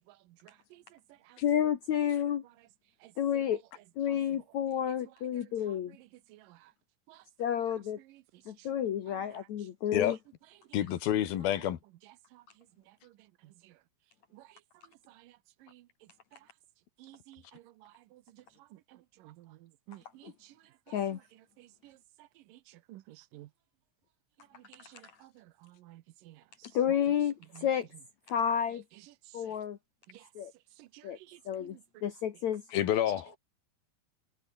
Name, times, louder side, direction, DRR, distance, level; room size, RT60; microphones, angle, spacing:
voice 1, 1.4-2.4 3.2-3.6 4.0-6.0 7.4-8.0 8.5-10.2 20.2-20.3 20.9-21.2 26.7-27.9 28.3-28.8 29.3-29.8 30.4-30.5 31.0-31.2 31.5-32.6, left 9 dB, 60° left, 2.6 m, -30 dB
voice 2, 10.7-11.8 32.7-33.4, left 11 dB, 90° left, 3.6 m, -28 dB
voice 3, 17.0-18.2 19.2-20.5 21.6-22.0 22.5-22.6 22.9-23.5 24.7-26.4 27.6-27.7 29.4-29.5 30.1-30.3 30.8-31.8, right 16 dB, 75° right, 2.5 m, -54 dB
omnidirectional pair, 4.2 m